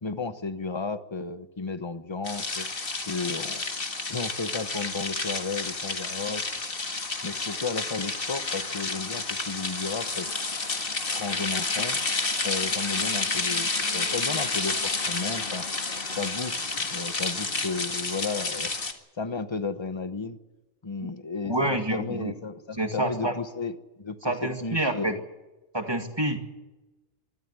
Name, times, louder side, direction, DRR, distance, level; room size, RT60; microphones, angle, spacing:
voice 1, 0.0-2.7 3.1-3.7 4.1-6.5 7.2-10.3 11.1-12.0 12.4-15.7 16.1-18.7 19.2-20.4 20.8-25.2, left 4 dB, 25° left, 11 dB, 1.0 m, -33 dB
sound 1, 2.2-18.9, left 3 dB, 50° left, 2.0 m, -30 dB
voice 2, 21.4-22.3 22.8-23.3 24.2-25.2 25.7-26.4, right 1 dB, 20° right, 5 dB, 2.0 m, -27 dB
24.0 x 13.0 x 9.7 m, 1.1 s
omnidirectional pair, 1.3 m